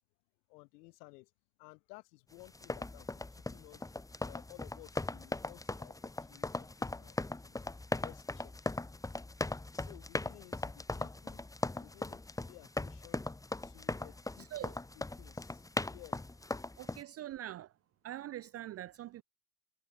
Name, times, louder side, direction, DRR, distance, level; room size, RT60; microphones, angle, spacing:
voice 1, 0.5-1.3 1.6-3.9 4.2-7.7 8.0-8.7 9.7-11.4 11.8-13.2 13.6-16.2, left 25 dB, 80° left, 5.5 m, -57 dB
sound 1, 2.5-17.0, left 2 dB, 5° left, 1.6 m, -39 dB
voice 2, 16.8-17.7 18.0-19.2, right 13 dB, 30° right, 0.5 m, -43 dB
supercardioid pair, 115°, 47 cm